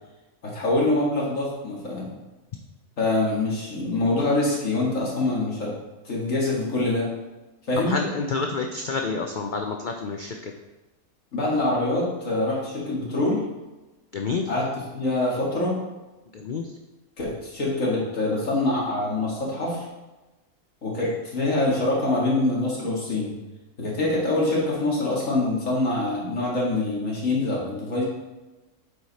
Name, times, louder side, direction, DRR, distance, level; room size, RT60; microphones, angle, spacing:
voice 1, 0.4-2.0 3.0-5.7 6.0-7.1 7.7-8.0 11.3-13.4 14.5-15.8 17.2-19.8 20.8-23.3 23.8-28.0, left 2 dB, 60° left, -5 dB, 2.4 m, -25 dB
voice 2, 7.9-10.5 14.1-14.4 16.3-16.6 21.0-21.1, left 4 dB, 75° left, 3 dB, 0.4 m, -29 dB
7.7 x 4.9 x 4.1 m, 1.1 s
omnidirectional pair, 1.5 m